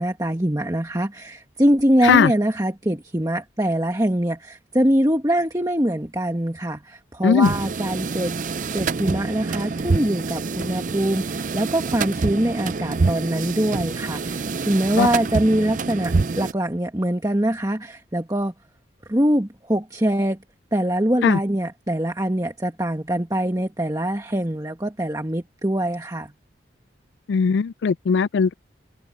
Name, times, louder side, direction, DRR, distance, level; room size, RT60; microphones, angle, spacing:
voice 1, 0.0-8.4 8.7-18.5 19.1-20.4 20.7-26.3, right 1 dB, 20° right, 1.6 m, -23 dB
sound 1, 7.4-16.5, right 4 dB, 45° right, 0.5 m, -26 dB
voice 2, 27.3-28.6, left 6 dB, 75° left, 0.3 m, -18 dB
head